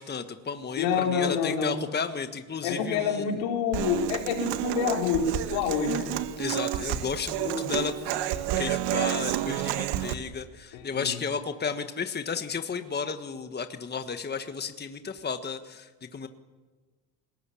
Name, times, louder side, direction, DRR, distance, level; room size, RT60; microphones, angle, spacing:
voice 1, 0.0-3.4 6.4-16.3, left 5 dB, 25° left, 8 dB, 1.5 m, -33 dB
voice 2, 0.8-1.8 2.6-6.2 7.4-7.6 10.7-11.1, left 6 dB, 80° left, 2 dB, 4.6 m, -28 dB
Human voice / Acoustic guitar, 3.7-10.1, right 13 dB, 65° right, 1.6 m, -30 dB
21.5 x 19.5 x 8.7 m, 1.3 s
supercardioid pair, 85°, 44 cm